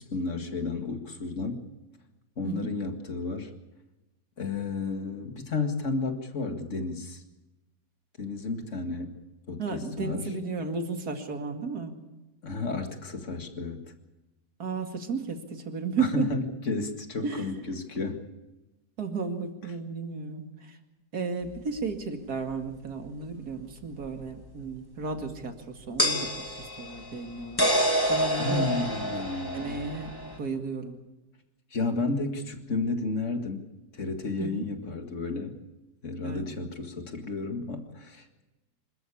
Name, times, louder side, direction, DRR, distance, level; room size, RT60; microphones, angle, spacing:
voice 1, 0.0-1.6 2.4-3.5 4.4-7.2 8.2-9.2 9.5-10.3 12.4-13.8 16.0-18.2 28.3-29.9 31.7-33.7 33.9-35.5 36.0-38.4, left 3 dB, 45° left, 6 dB, 2.3 m, -32 dB
voice 2, 9.6-11.9 14.6-16.3 17.2-17.5 19.0-20.8 21.1-27.7 28.1-28.7 29.5-30.1 30.4-31.0 34.4-34.7 36.2-36.5, right 4 dB, 65° right, 5 dB, 2.7 m, -33 dB
sound 1, 21.6-21.7 24.0-24.1 26.0-30.4, equal, 15° left, 2.3 m, -28 dB
26.5 x 13.5 x 8.5 m, 1.0 s
omnidirectional pair, 1.8 m